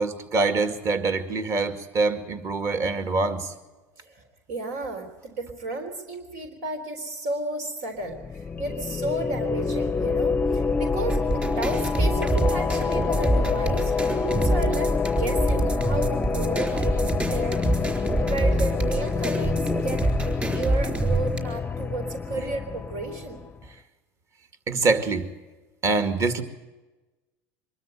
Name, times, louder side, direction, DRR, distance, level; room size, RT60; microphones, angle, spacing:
voice 1, 0.0-3.5 24.7-25.3 25.8-26.4, right 3 dB, 40° right, 8 dB, 2.2 m, -24 dB
voice 2, 4.1-17.9 18.2-19.6 19.8-20.0 20.4-23.4, right 2 dB, 85° right, 6 dB, 3.8 m, -33 dB
sound 1, 8.1-23.5, left 5 dB, 20° left, 0.6 m, -27 dB
sound 2, 11.1-21.4, right 2 dB, 20° right, 4.1 m, -26 dB
24.0 x 13.0 x 9.0 m, 1.1 s
supercardioid pair, 115°, 8 cm